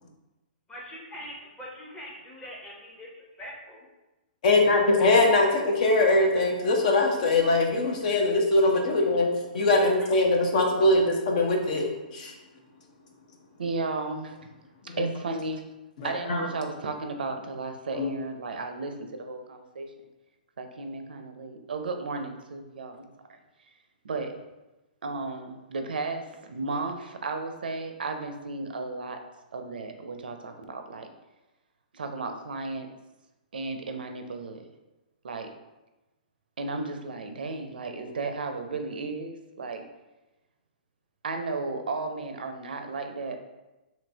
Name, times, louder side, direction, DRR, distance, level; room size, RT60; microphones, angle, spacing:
voice 1, 0.7-3.1 3.4-3.8, equal, 15° left, -4 dB, 0.8 m, -42 dB
voice 2, 4.4-9.3 9.5-12.3 14.9-15.1 16.0-16.5 17.9-18.1, left 2 dB, 55° left, 2 dB, 0.7 m, -22 dB
voice 3, 13.6-14.5 15.0-15.6 16.0-19.9 20.6-23.1 24.0-24.4 25.0-29.2 29.5-31.1 31.9-32.9 33.5-34.6 35.2-35.5 36.6-39.8 41.2-43.4, right 3 dB, 80° right, 6 dB, 0.4 m, -34 dB
2.9 x 2.5 x 3.3 m, 1.0 s
hypercardioid pair, 130°, 5 cm